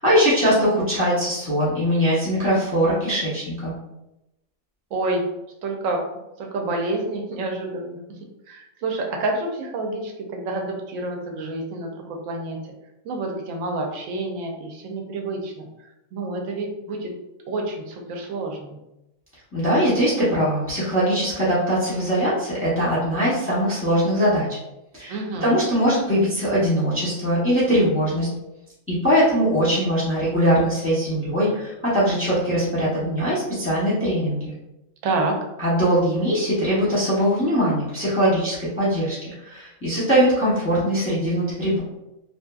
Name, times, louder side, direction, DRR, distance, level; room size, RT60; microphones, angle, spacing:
voice 1, 0.0-3.7 19.5-24.5 24.9-28.3 28.9-34.5 35.6-41.8, equal, 15° left, -9 dB, 0.6 m, -21 dB
voice 2, 4.9-5.2 5.6-6.0 6.4-8.0 8.5-12.6 13.0-15.7 16.1-17.1 17.4-18.8 25.1-25.6 35.0-35.4, right 2 dB, 80° right, 2 dB, 1.0 m, -28 dB
2.7 x 2.5 x 2.3 m, 0.91 s
omnidirectional pair, 1.4 m